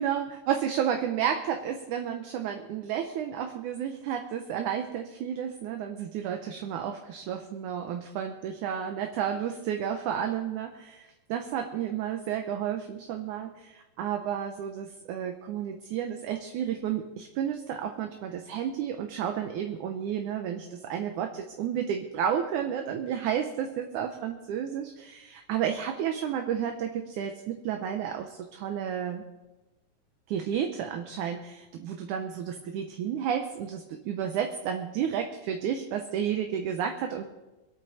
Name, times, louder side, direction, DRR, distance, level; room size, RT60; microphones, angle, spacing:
voice 1, 0.0-29.2 30.3-37.2, right 9 dB, 70° right, 5 dB, 2.2 m, -31 dB
26.0 x 9.1 x 4.2 m, 1.0 s
omnidirectional pair, 3.9 m